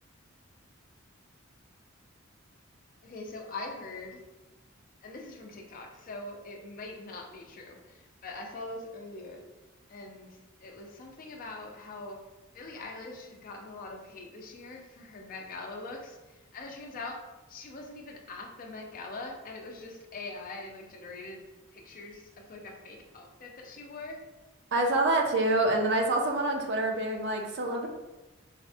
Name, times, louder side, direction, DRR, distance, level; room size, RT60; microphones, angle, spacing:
voice 1, 3.0-4.2 5.0-9.4 9.9-12.2 12.5-16.2 16.5-17.2 17.5-21.5 21.7-24.2, left 2 dB, 45° left, 2 dB, 0.4 m, -43 dB
voice 2, 24.7-27.9, right 2 dB, 55° right, 2 dB, 0.5 m, -26 dB
4.1 x 2.1 x 2.6 m, 1.1 s
head